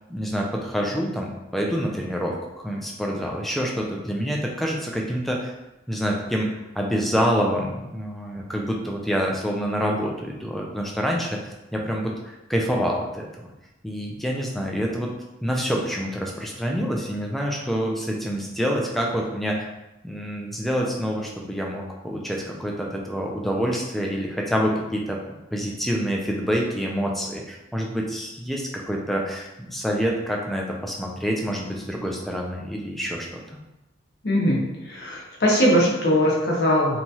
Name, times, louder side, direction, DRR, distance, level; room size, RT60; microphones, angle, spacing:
voice 1, 0.1-5.5 5.9-6.5 6.8-13.5 13.8-15.1 15.4-19.7 20.0-25.2 25.5-33.4, equal, ahead, -1 dB, 0.3 m, -27 dB
voice 2, 34.2-37.0, equal, 55° left, -3 dB, 0.7 m, -21 dB
2.9 x 2.3 x 2.7 m, 0.94 s
head